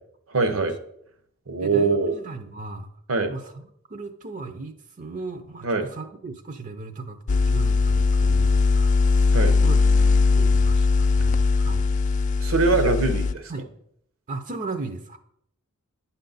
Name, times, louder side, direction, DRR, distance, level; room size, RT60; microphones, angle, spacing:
voice 1, 0.3-0.8 1.5-2.2 3.1-3.3 5.6-5.9 9.3-9.5 12.4-13.5, right 3 dB, 75° right, 9 dB, 1.0 m, -23 dB
voice 2, 1.6-2.9 3.3-3.6 3.9-10.1 10.3-11.8 12.7-12.8 13.5-13.7 14.3-15.2, right 3 dB, 40° right, 8 dB, 0.6 m, -37 dB
sound 1, 7.3-13.3, left 4 dB, 35° left, 0.3 m, -20 dB
8.9 x 5.6 x 4.0 m, 0.71 s
head